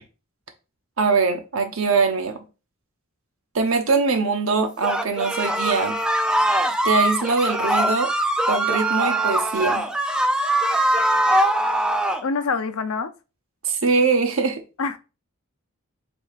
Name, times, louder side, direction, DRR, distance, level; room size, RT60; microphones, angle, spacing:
voice 1, 1.0-2.4 3.5-6.0 6.8-8.1 8.5-9.9 13.6-14.6, right 4 dB, 70° right, 0.9 m, -22 dB
sound 1, 4.8-12.2, right 1 dB, 5° right, 0.4 m, -22 dB
voice 2, 12.2-13.1 14.8-15.0, left 4 dB, 80° left, 0.6 m, -25 dB
7.6 x 2.9 x 2.4 m
head